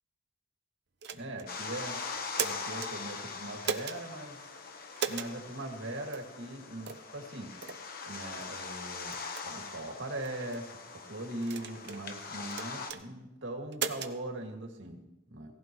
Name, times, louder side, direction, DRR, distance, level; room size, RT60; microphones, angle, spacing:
sound 1, 1.0-1.5 2.1-2.9 3.6-4.0 5.0-5.3 6.1-6.3 6.8-7.1 7.6-7.8 8.4-8.5 9.1-9.4 10.2-10.6 11.4-12.0 12.5-13.0 13.7-14.1, right 7 dB, 60° right, 0.8 m, -36 dB
voice 1, 1.1-2.0 2.4-4.4 5.0-7.6 8.0-9.1 9.4-15.6, right 1 dB, 85° right, 1 dB, 2.2 m, -40 dB
sound 2, 1.5-12.9, left 4 dB, 50° left, 1.1 m, -42 dB
18.0 x 15.0 x 3.1 m, 0.90 s
head